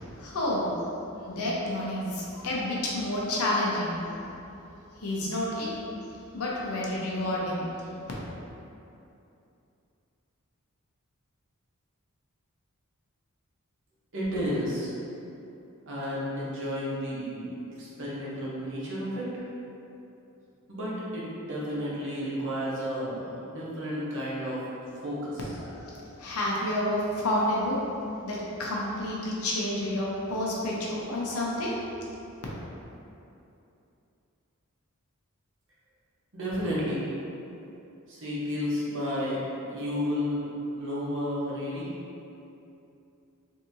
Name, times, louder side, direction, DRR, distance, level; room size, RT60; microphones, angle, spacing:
voice 1, 0.2-0.7 1.2-4.0 5.0-5.7 6.3-7.7 25.6-27.8 28.2-31.7, left 1 dB, 85° left, -4 dB, 0.7 m, -29 dB
voice 2, 14.1-14.9 15.9-19.5 20.7-24.6 25.0-25.5 36.3-37.0 38.1-39.4 39.7-41.9, equal, 55° right, -7 dB, 0.8 m, -32 dB
3.5 x 2.8 x 2.6 m, 2.8 s
head